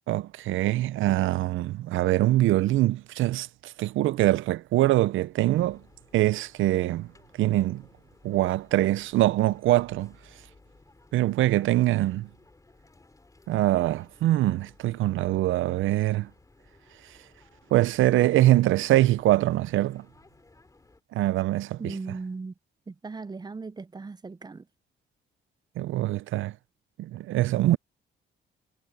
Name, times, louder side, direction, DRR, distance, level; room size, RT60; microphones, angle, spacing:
voice 1, 0.1-5.8 6.1-7.1 7.4-7.8 8.2-10.1 11.1-12.3 13.5-16.3 17.7-20.1 21.1-21.9 25.8-26.5 27.0-27.8, right 15 dB, 80° right, 0.6 m, -23 dB
sound 1, 5.5-21.0, left 2 dB, 15° left, 3.9 m, -58 dB
voice 2, 21.8-22.5 22.9-24.7, right 4 dB, 20° right, 0.6 m, -37 dB
cardioid pair, 90°, 20 cm